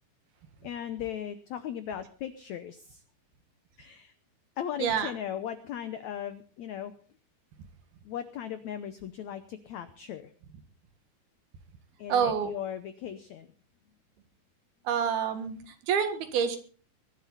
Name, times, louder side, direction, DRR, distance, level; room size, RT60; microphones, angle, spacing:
voice 1, 0.6-3.0 3.8-4.1 4.6-6.9 8.0-10.3 12.0-13.5, left 9 dB, 85° left, 11 dB, 1.6 m, -37 dB
voice 2, 4.8-5.1 12.1-12.5 14.9-15.6 15.8-16.6, right 7 dB, 80° right, 8 dB, 3.6 m, -27 dB
21.5 x 11.5 x 4.0 m, 0.40 s
omnidirectional pair, 4.4 m